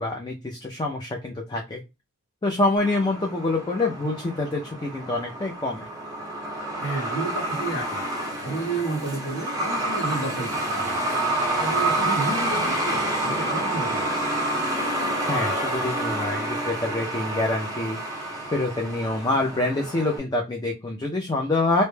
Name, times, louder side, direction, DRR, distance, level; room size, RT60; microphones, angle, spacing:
voice 1, 0.0-1.8 2.4-5.9 15.3-21.8, left 2 dB, 20° left, 0.3 m, -26 dB
Truck, 2.8-20.2, right 1 dB, 15° right, 0.6 m, -28 dB
voice 2, 6.8-8.0 8.3-11.0 11.6-14.2, right 2 dB, 55° left, 0.9 m, -31 dB
2.1 x 2.1 x 3.1 m
head